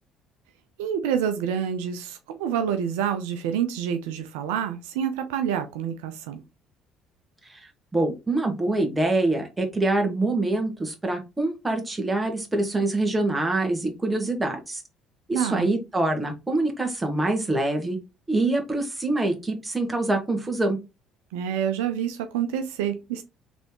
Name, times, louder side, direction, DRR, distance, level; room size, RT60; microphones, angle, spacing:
voice 1, 0.8-6.4 15.3-15.7 21.3-23.2, right 8 dB, 80° right, 0.5 m, -27 dB
voice 2, 7.9-14.8 15.3-18.0 18.3-20.8, right 2 dB, 15° right, 1.7 m, -25 dB
4.1 x 3.4 x 3.0 m
hypercardioid pair, 65°, 0 cm